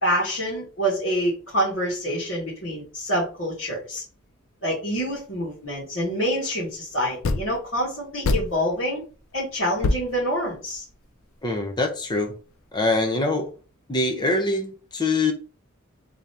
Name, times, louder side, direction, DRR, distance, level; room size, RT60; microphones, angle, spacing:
voice 1, 0.0-4.0 4.6-9.0 9.3-10.8, equal, 65° left, 2.0 m, -26 dB
sound 1, 5.1-5.2 7.2-7.7 8.2-8.9 9.3-9.4 9.8-11.0, left 2 dB, 85° left, 0.5 m, -26 dB
voice 2, 11.4-12.3 12.7-13.5 13.9-15.3, left 2 dB, 20° left, 0.6 m, -24 dB
3.8 x 2.9 x 3.4 m
head